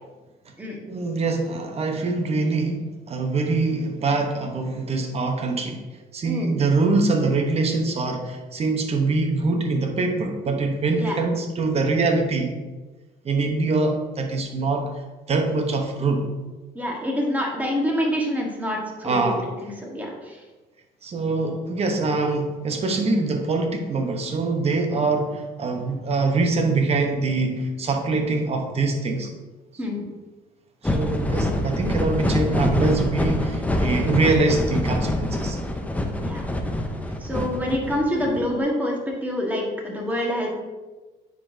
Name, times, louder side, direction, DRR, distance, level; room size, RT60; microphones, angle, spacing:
voice 1, 0.9-5.8 6.1-12.6 13.2-14.9 15.3-16.2 19.0-19.5 21.0-29.3 30.8-35.6 37.1-37.2 40.1-40.2, right 3 dB, 40° right, 4 dB, 0.9 m, -24 dB
voice 2, 6.2-6.5 11.0-11.2 16.7-19.3 19.6-20.4 29.8-30.0 36.2-36.5 37.2-40.5, equal, 10° right, -1 dB, 1.4 m, -26 dB
sound 1, 30.8-38.5, left 1 dB, 10° left, 0.6 m, -25 dB
9.5 x 4.0 x 2.7 m, 1.2 s
cardioid pair, 110°, 17 cm